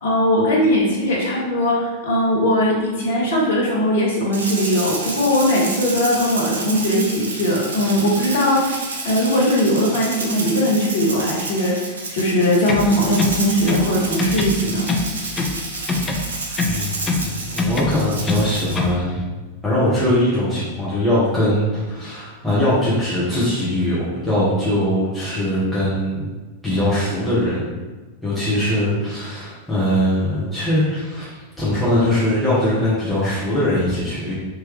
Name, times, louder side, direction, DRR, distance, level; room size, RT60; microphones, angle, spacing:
voice 1, 0.0-8.8 9.0-15.0, equal, 60° left, -2 dB, 1.0 m, -19 dB
Rattle (instrument), 4.3-18.9, right 2 dB, 70° right, 0.6 m, -30 dB
sound 1, 12.6-13.9 14.2-15.6 15.9-17.3 17.6-19.0, left 3 dB, 20° left, 0.4 m, -23 dB
voice 2, 16.6-19.2 19.6-26.3 26.6-27.6 28.2-34.4, left 1 dB, 5° left, -11 dB, 1.2 m, -21 dB
3.6 x 3.1 x 3.1 m, 1.2 s
figure-of-eight pair, 90°, 0 cm